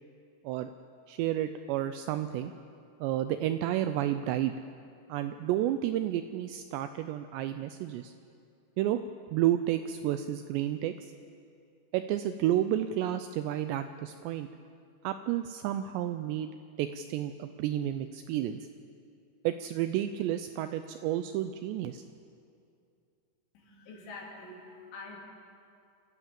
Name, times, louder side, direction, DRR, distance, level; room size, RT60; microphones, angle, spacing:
voice 1, 1.1-2.5 3.0-4.5 5.1-8.1 8.8-9.0 9.3-11.1 11.9-14.5 15.0-16.5 16.8-18.6 19.4-22.0, right 12 dB, 85° right, 10 dB, 2.5 m, -31 dB
voice 2, 23.6-25.2, left 3 dB, 70° left, -1 dB, 5.3 m, -46 dB
26.5 x 14.0 x 7.6 m, 2.5 s
omnidirectional pair, 5.5 m